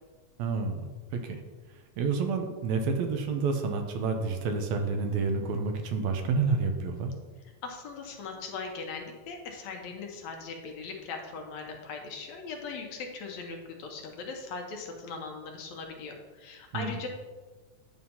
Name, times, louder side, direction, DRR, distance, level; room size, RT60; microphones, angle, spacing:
voice 1, 0.4-1.4 2.0-7.1 16.7-17.0, right 4 dB, 80° right, 5 dB, 1.9 m, -29 dB
voice 2, 7.6-17.1, left 4 dB, 75° left, 2 dB, 1.9 m, -39 dB
9.4 x 5.5 x 2.8 m, 1.3 s
omnidirectional pair, 3.4 m